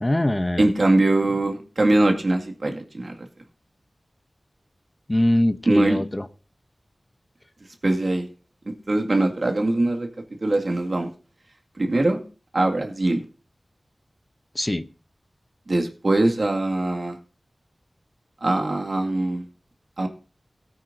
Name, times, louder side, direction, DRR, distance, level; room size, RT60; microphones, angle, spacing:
voice 1, 0.0-0.7 5.1-6.3 14.5-14.9, left 1 dB, 25° left, 11 dB, 0.7 m, -22 dB
voice 2, 0.6-3.1 5.7-6.0 7.8-8.3 8.9-10.1 10.4-11.1 11.8-12.2 12.5-13.2 15.7-17.2 18.4-19.4 20.0-20.1, right 2 dB, 65° right, 3 dB, 2.0 m, -22 dB
17.5 x 9.0 x 2.6 m, 0.34 s
wide cardioid pair, 50°, 0 cm